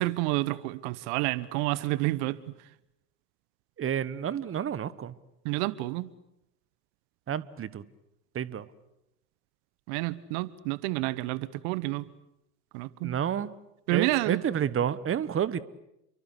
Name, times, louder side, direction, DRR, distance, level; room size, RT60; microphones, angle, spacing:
voice 1, 0.0-2.4 5.4-6.1 9.9-12.1 12.7-13.2 13.9-14.4, right 19 dB, 55° right, 19 dB, 1.2 m, -29 dB
voice 2, 3.8-5.1 7.3-7.8 8.3-8.7 13.0-13.5 13.9-15.6, right 9 dB, 25° right, 18 dB, 1.2 m, -30 dB
29.5 x 24.0 x 8.3 m, 0.85 s
hypercardioid pair, 75°, 50 cm